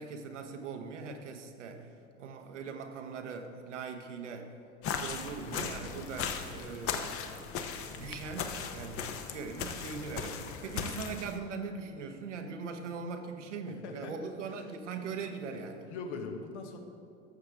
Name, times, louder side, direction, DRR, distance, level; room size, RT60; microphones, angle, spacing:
voice 1, 0.0-1.9 2.2-4.5 4.9-7.1 7.8-15.9, right 5 dB, 80° right, 5 dB, 1.0 m, -41 dB
sound 1, 4.8-11.4, left 6 dB, 40° left, 0.8 m, -38 dB
voice 2, 10.6-10.9 13.7-14.3 15.5-16.8, left 4 dB, 70° left, 4 dB, 1.2 m, -42 dB
13.0 x 6.7 x 3.5 m, 2.7 s
hypercardioid pair, 85°, 36 cm